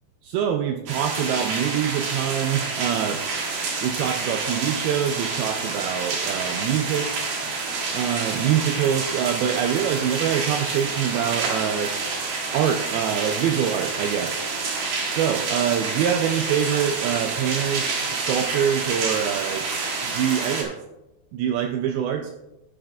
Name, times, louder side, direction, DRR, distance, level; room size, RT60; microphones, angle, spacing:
voice 1, 0.2-3.2 3.8-7.2 7.9-11.9 12.5-14.5 15.1-19.7 20.0-20.8 21.3-22.3, right 9 dB, 85° right, 4 dB, 2.2 m, -25 dB
sound 1, 0.9-20.6, right 4 dB, 65° right, 3.1 m, -28 dB
11.5 x 8.9 x 2.4 m, 0.96 s
omnidirectional pair, 4.9 m